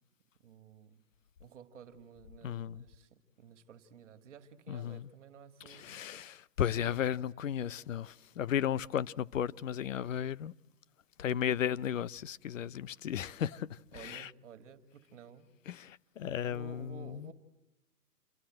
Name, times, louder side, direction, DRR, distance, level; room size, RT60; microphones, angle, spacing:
voice 1, 0.4-1.0 1.4-6.2 6.7-7.4 11.2-11.5 13.9-15.5 16.5-17.3, right 7 dB, 50° right, 2.4 m, -53 dB
voice 2, 2.4-2.8 4.7-5.1 5.7-10.5 11.2-14.3 15.7-17.3, left 9 dB, 55° left, 0.8 m, -35 dB
27.5 x 21.0 x 7.7 m
hypercardioid pair, 155°, 47 cm